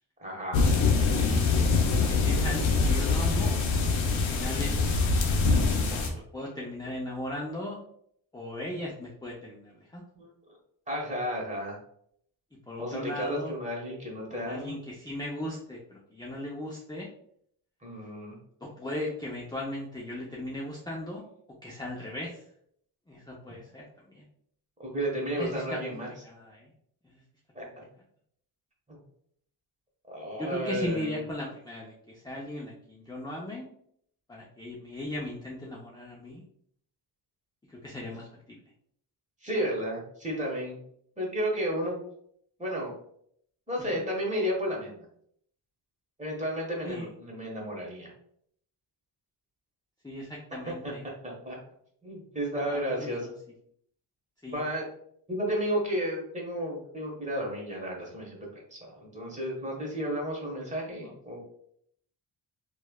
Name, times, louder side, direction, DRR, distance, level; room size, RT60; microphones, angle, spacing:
voice 1, 0.2-0.8 8.7-8.9 10.1-10.3 10.9-11.8 12.8-14.8 17.8-18.4 24.8-26.1 27.5-27.8 28.9-29.0 30.1-31.2 39.4-40.8 41.2-42.0 42.6-42.9 43.7-45.0 46.2-48.1 50.8-50.9 51.2-51.6 52.0-53.3 54.5-54.9 55.3-61.4, equal, 15° right, -2 dB, 1.2 m, -33 dB
sound 1, 0.5-6.1, left 4 dB, 75° left, 0.7 m, -24 dB
voice 2, 1.9-3.6 4.0-4.9 5.9-7.8 8.3-10.0 12.5-13.5 14.3-17.1 18.6-21.3 21.6-22.4 23.1-24.2 25.4-26.7 27.0-27.2 30.4-33.7 34.3-36.4 37.7-38.6 43.8-44.0 46.8-47.1 50.0-51.0 52.6-53.1 54.4-54.6 61.0-61.1, left 1 dB, 10° left, -3 dB, 0.5 m, -38 dB
3.1 x 2.3 x 2.2 m, 0.68 s
supercardioid pair, 60°, 46 cm